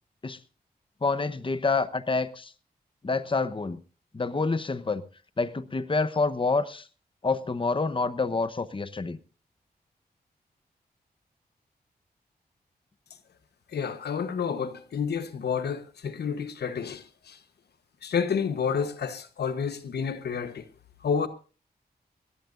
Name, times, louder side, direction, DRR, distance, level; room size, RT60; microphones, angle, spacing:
voice 1, 1.0-2.5 3.0-3.8 4.1-5.0 5.4-6.8 7.2-9.2, left 3 dB, 30° left, 1.0 m, -27 dB
voice 2, 13.7-17.4 18.0-20.6 21.0-21.3, left 6 dB, 85° left, 1.2 m, -30 dB
21.0 x 17.5 x 2.6 m
cardioid pair, 60°, 17 cm